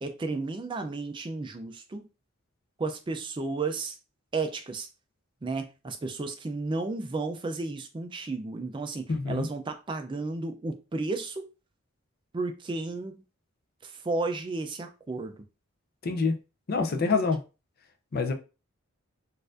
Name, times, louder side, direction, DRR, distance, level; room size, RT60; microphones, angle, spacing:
voice 1, 0.0-2.0 2.8-4.0 4.3-4.9 5.4-11.5 12.3-13.2 13.8-15.4, right 3 dB, 25° right, 0.3 m, -33 dB
voice 2, 9.1-9.5 16.0-16.3 16.7-17.4 18.1-18.3, left 4 dB, 45° left, 0.5 m, -26 dB
4.2 x 2.5 x 2.4 m
head